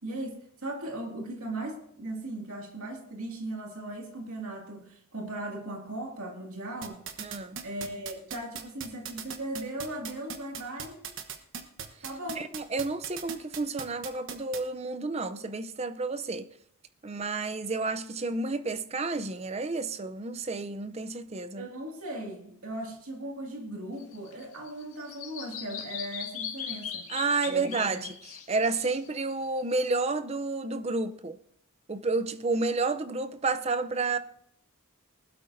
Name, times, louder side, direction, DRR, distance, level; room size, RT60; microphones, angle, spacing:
voice 1, 0.0-7.0 7.6-11.1 12.0-12.5 21.6-27.0 27.5-27.9, right 1 dB, 80° right, 2.2 m, -38 dB
sound 1, 6.8-14.6, right 7 dB, 60° right, 1.1 m, -38 dB
voice 2, 7.2-7.6 12.4-16.5 17.0-21.7 27.1-31.4 31.9-34.2, right 3 dB, 30° right, 0.5 m, -30 dB
Bird vocalization bird call bird song, 24.0-29.9, left 8 dB, 80° left, 2.0 m, -40 dB
19.5 x 12.5 x 2.7 m
head